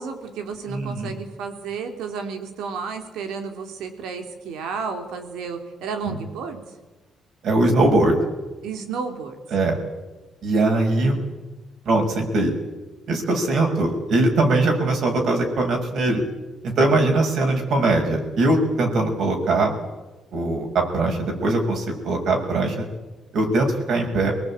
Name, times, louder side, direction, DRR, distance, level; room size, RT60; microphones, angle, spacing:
voice 1, 0.0-6.6 8.6-9.4, right 5 dB, 85° right, 6 dB, 3.5 m, -32 dB
voice 2, 0.7-1.1 6.0-6.2 7.4-8.1 9.5-9.8 10.4-11.2 11.8-12.5 13.1-16.2 16.6-19.8 20.3-22.8 23.3-24.3, right 2 dB, 70° right, 2 dB, 6.8 m, -21 dB
24.5 x 19.0 x 9.0 m, 1.2 s
cardioid pair, 90°, 0 cm